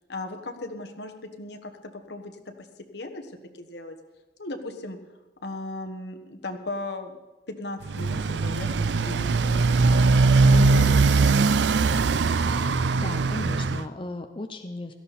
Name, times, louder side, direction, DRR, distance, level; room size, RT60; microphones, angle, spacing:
voice 1, 0.1-2.3 2.9-3.9 4.4-5.0 5.4-7.2 7.5-8.7 9.0-9.9 10.4-12.1, left 2 dB, 65° left, 5 dB, 1.4 m, -37 dB
Motorcycle, 7.8-13.8, right 3 dB, 75° right, 0.5 m, -21 dB
voice 2, 12.9-14.9, left 2 dB, 30° left, 6 dB, 0.7 m, -35 dB
17.0 x 14.0 x 4.2 m, 1.1 s
head